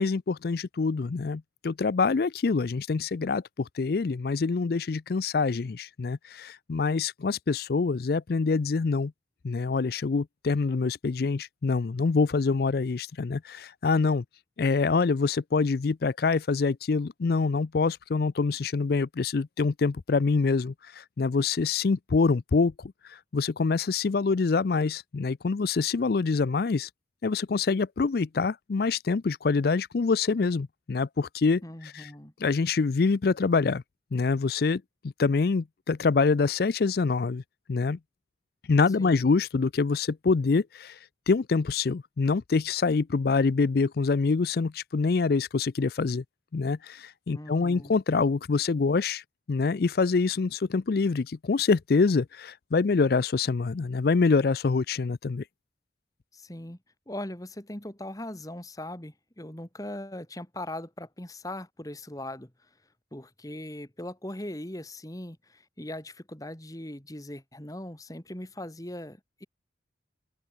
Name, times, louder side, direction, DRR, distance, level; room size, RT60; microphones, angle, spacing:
voice 1, 0.0-9.1 9.4-14.2 14.6-26.9 27.2-31.6 31.9-32.1 32.4-33.8 34.1-37.4 37.7-38.0 38.7-41.0 41.3-46.2 46.5-49.2 49.5-55.4, left 4 dB, 55° left, 0.4 m, -25 dB
voice 2, 31.6-32.3 39.0-39.3 47.3-47.9 56.3-56.8 57.1-62.7 63.1-69.5, left 1 dB, 20° left, 1.9 m, -40 dB
open air
head